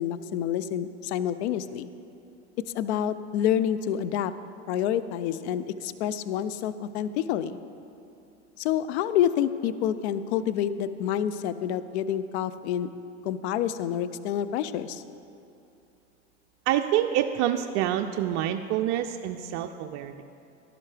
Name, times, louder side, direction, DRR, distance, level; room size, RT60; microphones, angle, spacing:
voice 1, 0.0-1.9 2.7-4.3 4.7-7.6 8.6-12.9 13.2-15.0, left 10 dB, 70° left, 14 dB, 0.5 m, -28 dB
voice 2, 16.7-20.2, right 11 dB, 50° right, 6 dB, 0.5 m, -27 dB
11.5 x 11.0 x 3.3 m, 2.8 s
hypercardioid pair, 100°, 35 cm